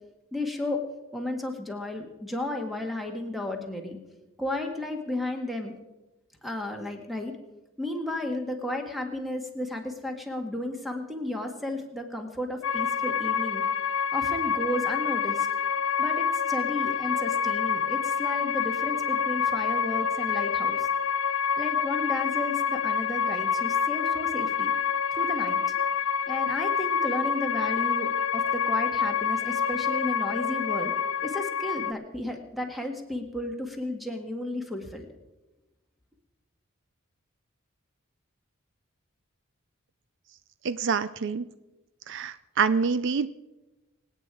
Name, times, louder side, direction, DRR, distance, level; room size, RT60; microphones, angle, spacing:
voice 1, 0.3-0.8 1.1-4.0 4.4-5.7 6.4-7.3 7.8-13.6 14.1-15.5 16.0-20.9 21.6-24.7 25.1-25.7 26.3-30.9 31.2-35.1, left 1 dB, ahead, 4 dB, 1.8 m, -33 dB
sound 1, 12.6-31.9, left 7 dB, 65° left, 0.4 m, -27 dB
voice 2, 40.6-41.5 42.1-43.3, right 5 dB, 60° right, 14 dB, 0.5 m, -26 dB
25.5 x 9.1 x 4.8 m, 1.0 s
head